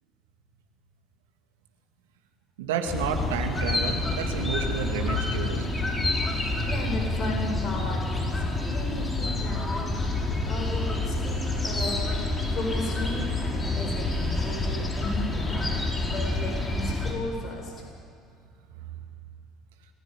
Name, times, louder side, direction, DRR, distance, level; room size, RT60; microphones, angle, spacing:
voice 1, 2.6-5.7, right 6 dB, 75° right, 4 dB, 2.5 m, -30 dB
sound 1, 2.9-17.1, left 2 dB, 20° left, 5.3 m, -28 dB
voice 2, 6.6-12.2 12.5-17.9, left 1 dB, 40° left, 0 dB, 8.0 m, -35 dB
29.0 x 15.5 x 9.0 m, 2.3 s
hypercardioid pair, 65°, 0 cm